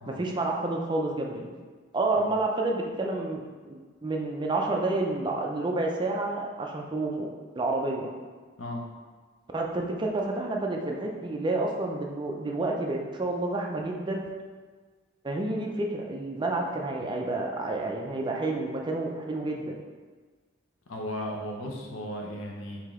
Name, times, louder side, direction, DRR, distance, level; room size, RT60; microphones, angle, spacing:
voice 1, 0.1-1.5 1.9-7.3 7.5-8.1 9.5-14.3 15.2-19.7, right 2 dB, 25° right, 1 dB, 0.4 m, -29 dB
voice 2, 20.9-22.8, equal, 80° left, 0 dB, 0.7 m, -36 dB
5.0 x 2.8 x 3.6 m, 1.5 s
head